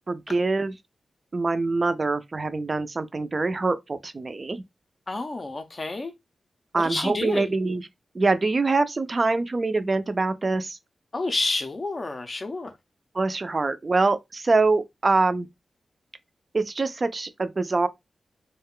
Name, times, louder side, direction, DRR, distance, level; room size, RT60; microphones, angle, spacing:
voice 1, 0.1-0.7 1.3-4.6 6.7-7.8 8.1-10.8 13.2-15.5 16.5-17.9, right 3 dB, 30° right, 0.3 m, -24 dB
voice 2, 5.1-6.1 6.7-7.5 11.1-12.8, left 2 dB, 30° left, 0.4 m, -29 dB
2.4 x 2.1 x 3.6 m
wide cardioid pair, 155°, 0 cm